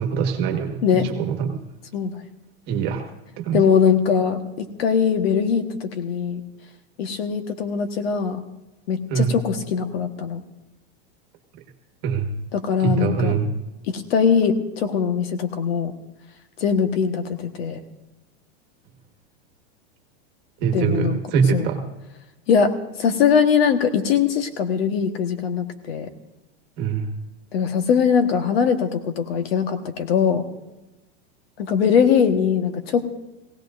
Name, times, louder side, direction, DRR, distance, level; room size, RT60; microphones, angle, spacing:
voice 1, 0.0-1.6 2.7-3.0 3.4-3.6 9.1-9.3 12.0-12.3 12.8-13.5 20.6-21.8 26.8-27.1, right 6 dB, 30° right, 4 dB, 1.5 m, -23 dB
voice 2, 3.5-6.4 7.0-8.4 8.9-10.4 12.5-13.3 13.9-15.9 16.6-17.8 20.7-21.2 21.5-21.7 22.5-22.7 23.0-26.1 27.5-30.4 31.6-33.0, left 7 dB, 65° left, 7 dB, 1.5 m, -21 dB
19.5 x 17.0 x 2.6 m, 1.0 s
supercardioid pair, 170°, 33 cm